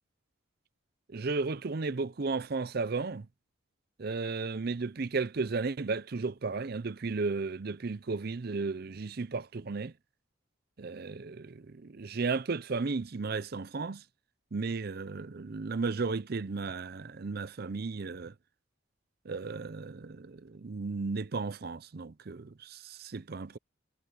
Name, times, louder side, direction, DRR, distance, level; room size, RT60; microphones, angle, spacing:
voice 1, 1.1-3.3 4.0-9.9 10.8-14.0 14.5-18.3 19.2-23.6, right 4 dB, 50° right, 0.5 m, -34 dB
head